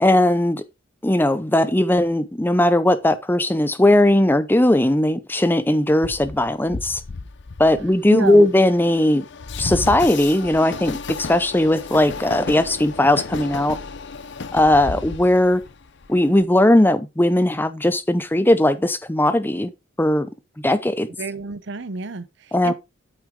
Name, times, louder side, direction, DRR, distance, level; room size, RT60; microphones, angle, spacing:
voice 1, 0.0-0.6 1.0-7.0 7.6-9.3 9.6-13.8 14.5-15.6 16.1-19.7 20.0-20.3 20.6-21.1 22.5-22.7, left 1 dB, 10° left, 0.6 m, -18 dB
Train, 6.0-16.4, left 4 dB, 60° left, 0.7 m, -33 dB
voice 2, 8.1-8.5 21.2-22.7, right 3 dB, 60° right, 0.7 m, -29 dB
8.5 x 6.2 x 3.7 m
head